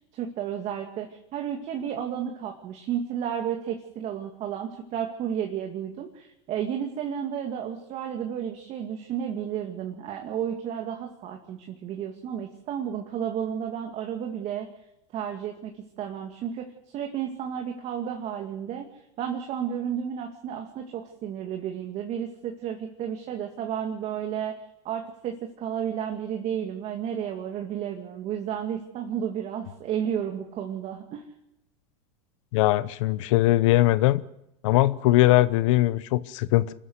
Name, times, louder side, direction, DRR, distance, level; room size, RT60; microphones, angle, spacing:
voice 1, 0.1-14.7 15.1-15.7 16.0-18.9 19.2-24.6 24.8-31.2, right 9 dB, 40° right, 2.3 m, -32 dB
voice 2, 32.5-34.2 34.6-36.7, left 16 dB, 65° left, 0.9 m, -21 dB
25.5 x 14.0 x 8.1 m
supercardioid pair, 120°, 17 cm